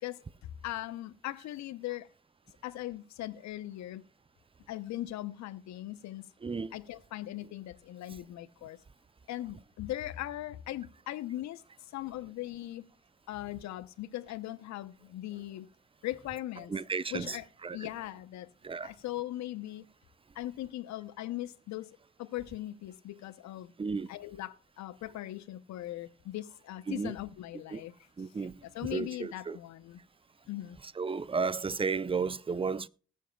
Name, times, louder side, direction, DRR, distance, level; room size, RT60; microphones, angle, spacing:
voice 1, 0.0-2.1 2.6-4.0 4.7-6.3 6.7-8.8 9.3-11.6 11.9-12.8 13.3-15.7 16.0-16.7 17.1-18.5 18.8-19.9 20.3-23.7 24.1-27.9 28.4-30.0 30.5-30.8, left 14 dB, 65° left, 0.8 m, -39 dB
voice 2, 6.4-6.7 16.7-17.4 17.6-17.8 18.6-18.9 23.8-24.1 26.9-27.1 27.7-27.8 28.2-28.5 28.9-29.6 31.0-32.9, right 5 dB, 20° right, 0.5 m, -33 dB
19.5 x 7.6 x 2.3 m
hypercardioid pair, 45°, 29 cm